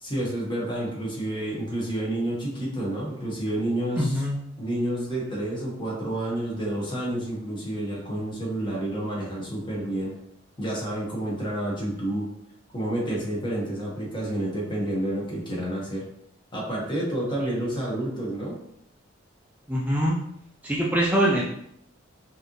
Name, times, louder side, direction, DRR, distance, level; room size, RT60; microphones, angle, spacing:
voice 1, 0.0-4.2 4.6-10.1 10.6-12.3 12.7-16.0 16.5-18.6, right 1 dB, 25° left, -4 dB, 1.3 m, -29 dB
voice 2, 4.0-4.4 19.7-20.2 20.6-21.4, equal, 10° right, -5 dB, 0.5 m, -23 dB
5.1 x 2.9 x 3.1 m, 0.73 s
head